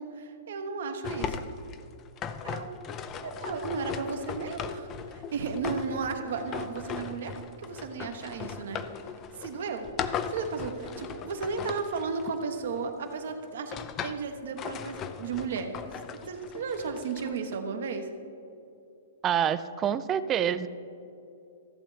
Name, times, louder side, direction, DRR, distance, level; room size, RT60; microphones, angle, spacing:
voice 1, 0.0-1.4 2.4-2.7 3.2-8.8 9.4-9.9 10.3-15.7 16.1-18.1, right 5 dB, 65° right, 5 dB, 1.1 m, -34 dB
sound 1, 1.0-12.9 13.4-14.3 14.6-17.6, left 7 dB, 30° left, 0.5 m, -38 dB
voice 2, 19.2-20.7, right 9 dB, 25° right, 14 dB, 0.4 m, -27 dB
14.5 x 7.6 x 3.3 m, 2.7 s
hypercardioid pair, 125°, 0 cm